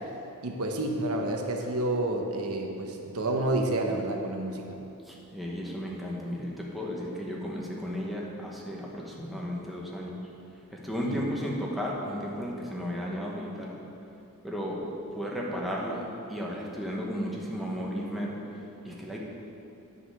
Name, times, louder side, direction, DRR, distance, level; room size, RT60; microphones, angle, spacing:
voice 1, 0.4-4.8 11.1-11.3, right 2 dB, 75° right, 2 dB, 0.9 m, -29 dB
voice 2, 5.1-10.2 10.7-13.8 14.4-14.8 15.1-18.4 18.8-19.2, equal, ahead, -4 dB, 1.2 m, -34 dB
9.6 x 5.5 x 6.5 m, 2.8 s
head